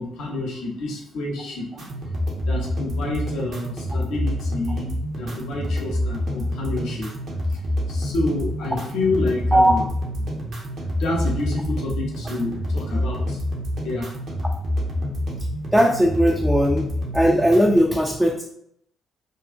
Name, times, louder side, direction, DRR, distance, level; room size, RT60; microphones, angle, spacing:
voice 1, 0.0-1.6 2.5-7.1 7.5-7.6 7.9-9.8 11.0-13.4 13.8-14.1, left 2 dB, 65° left, -1 dB, 0.7 m, -28 dB
sound 1, 1.8-17.8, left 1 dB, 50° right, 0.8 m, -27 dB
voice 2, 15.7-16.9 17.1-18.4, equal, 5° right, 0 dB, 0.4 m, -18 dB
2.6 x 2.4 x 2.4 m, 0.70 s
figure-of-eight pair, 45°, 0 cm